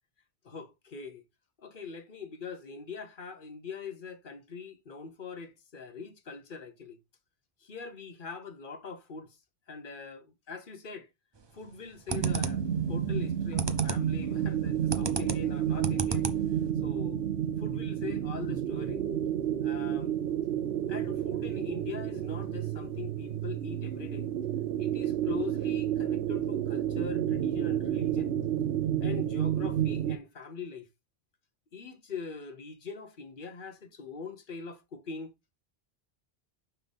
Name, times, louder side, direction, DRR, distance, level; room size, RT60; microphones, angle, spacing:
voice 1, 0.4-1.2 1.6-7.0 7.6-9.4 9.7-11.1 11.5-12.6 12.9-16.3 16.8-17.2 17.6-19.0 19.6-20.1 20.9-24.3 24.8-28.3 29.0-30.9 31.7-35.3, left 5 dB, 55° left, 1.1 m, -42 dB
sound 1, 11.4-11.7 12.1-12.7 13.2-14.1 14.4-16.7, right 3 dB, 30° right, 0.6 m, -34 dB
sound 2, 12.1-30.2, right 10 dB, 70° right, 0.9 m, -30 dB
Bass guitar, 12.5-18.7, left 9 dB, 75° left, 1.1 m, -51 dB
5.7 x 3.5 x 5.3 m
omnidirectional pair, 1.1 m